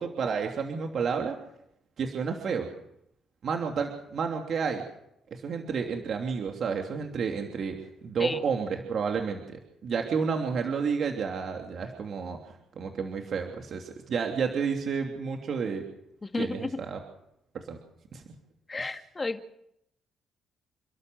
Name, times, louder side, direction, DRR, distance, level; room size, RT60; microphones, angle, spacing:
voice 1, 0.0-1.3 2.0-2.7 3.4-4.8 5.3-7.8 8.0-12.4 12.8-15.8 16.4-17.0 17.7-17.8 18.1-18.2, right 6 dB, 60° right, 3 dB, 2.9 m, -30 dB
voice 2, 16.2-16.8 18.7-19.5, left 3 dB, 25° left, 7 dB, 2.0 m, -32 dB
29.0 x 12.5 x 8.0 m, 0.79 s
cardioid pair, 90°, 0 cm